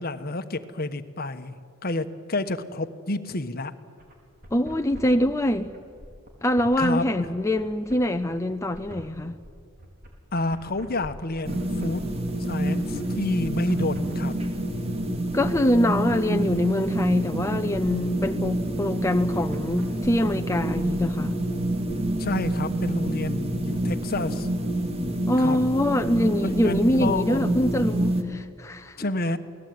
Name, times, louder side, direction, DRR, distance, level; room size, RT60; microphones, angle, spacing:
voice 1, 0.0-1.6 1.8-3.7 6.8-7.3 10.3-12.0 12.4-14.3 22.2-24.5 25.4-25.6 26.4-27.6 29.0-29.4, left 2 dB, 45° left, 10 dB, 1.2 m, -29 dB
sound 1, 4.0-20.1, equal, 45° right, 4.6 m, -45 dB
voice 2, 4.5-5.7 6.4-9.4 15.3-21.4 25.3-29.0, left 1 dB, 15° left, 6 dB, 0.6 m, -24 dB
sound 2, 11.4-28.2, right 1 dB, 30° right, 2.3 m, -27 dB
28.5 x 19.0 x 9.4 m, 2.2 s
head